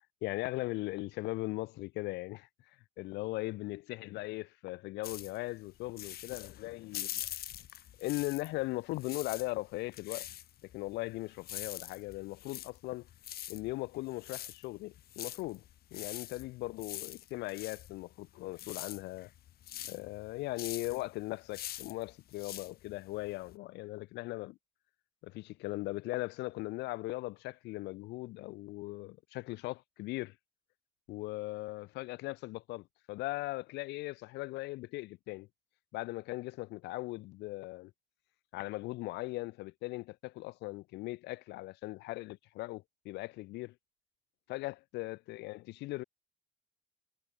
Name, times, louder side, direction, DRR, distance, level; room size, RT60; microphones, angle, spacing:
voice 1, 0.0-2.5 3.0-7.3 8.0-10.3 10.6-13.1 13.5-15.6 15.9-19.3 19.9-24.6 25.2-30.3 31.1-35.5 35.9-37.9 38.5-43.7 44.5-46.0, left 20 dB, 85° left, 1.2 m, -39 dB
sound 1, 5.0-8.6 8.9-23.5, left 12 dB, 65° left, 3.3 m, -44 dB
cardioid pair, 110°, 17 cm